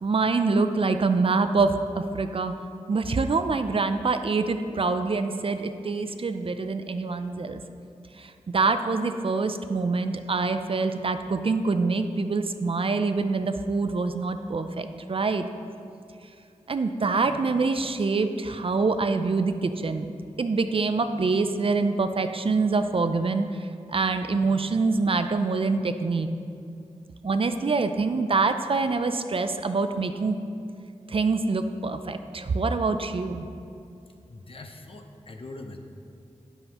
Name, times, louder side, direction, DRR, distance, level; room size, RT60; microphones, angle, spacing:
voice 1, 0.0-2.6 2.9-7.6 8.2-15.5 16.7-20.1 20.4-26.3 27.2-30.4 31.1-33.5, right 4 dB, 50° right, 9 dB, 0.4 m, -25 dB
voice 2, 34.3-35.8, left 2 dB, 50° left, 4 dB, 0.8 m, -42 dB
9.1 x 7.9 x 2.9 m, 2.5 s
cardioid pair, 45°, 12 cm